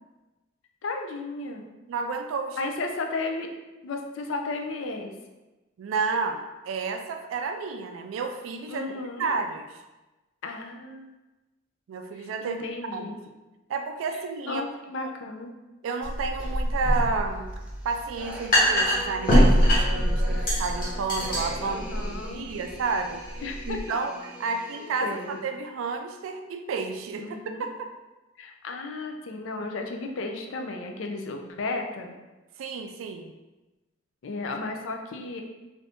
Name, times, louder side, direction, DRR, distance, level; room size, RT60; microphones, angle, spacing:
voice 1, 0.8-1.7 2.6-3.5 3.8-5.1 8.7-9.3 10.4-11.1 12.2-13.2 14.5-15.5 21.6-22.6 23.4-24.0 24.5-24.6 25.0-25.4 27.2-27.7 28.4-32.2 34.2-35.4, left 3 dB, 70° left, 3 dB, 0.4 m, -34 dB
voice 2, 1.9-2.6 5.8-8.8 9.2-9.8 11.9-12.6 12.9-13.2 13.7-14.6 14.9-15.1 15.8-17.5 17.8-23.2 23.7-27.9 32.6-33.3, right 4 dB, 80° right, 6 dB, 0.3 m, -31 dB
sound 1, 16.0-23.8, equal, 50° left, 1.1 m, -24 dB
sound 2, 17.6-25.5, equal, 5° right, 0.5 m, -42 dB
2.6 x 2.6 x 3.4 m, 1.1 s
head